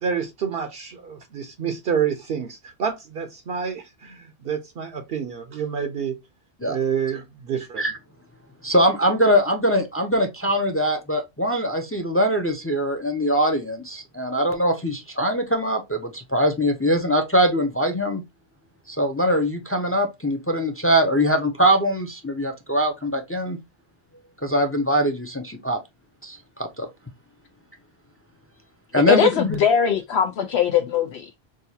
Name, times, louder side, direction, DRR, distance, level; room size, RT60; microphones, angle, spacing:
voice 1, 0.0-6.2 6.6-7.8, right 7 dB, 65° right, 0.8 m, -28 dB
voice 2, 8.6-18.2 18.9-23.6 24.4-25.8 26.2-26.9 28.9-29.6, equal, 20° left, 0.4 m, -22 dB
voice 3, 28.9-31.4, left 8 dB, 80° left, 0.9 m, -21 dB
6.2 x 2.3 x 2.7 m
omnidirectional pair, 1.1 m